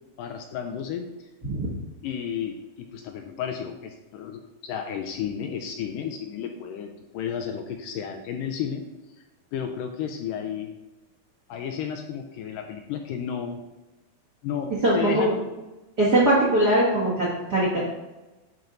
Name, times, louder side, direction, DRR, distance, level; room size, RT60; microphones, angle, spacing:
voice 1, 0.2-1.3 2.0-8.8 9.5-10.8 11.5-13.6 14.4-15.4, left 8 dB, 80° left, 4 dB, 2.1 m, -32 dB
voice 2, 14.8-15.4 16.0-17.8, right 1 dB, 45° right, -6 dB, 1.3 m, -21 dB
11.0 x 4.4 x 3.9 m, 1.1 s
omnidirectional pair, 4.2 m